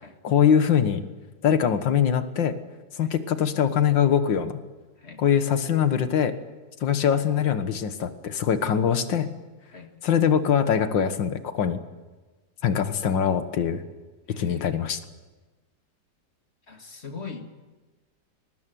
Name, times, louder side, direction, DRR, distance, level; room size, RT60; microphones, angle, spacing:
voice 1, 0.2-1.0 1.4-2.5 2.9-4.6 5.2-6.3 6.8-9.3 10.0-11.8 12.6-13.8 14.4-15.0, left 8 dB, 80° left, 10 dB, 2.1 m, -22 dB
voice 2, 14.3-14.7 16.7-17.5, left 4 dB, 35° left, 5 dB, 2.2 m, -41 dB
21.0 x 19.5 x 9.3 m, 1.3 s
omnidirectional pair, 2.0 m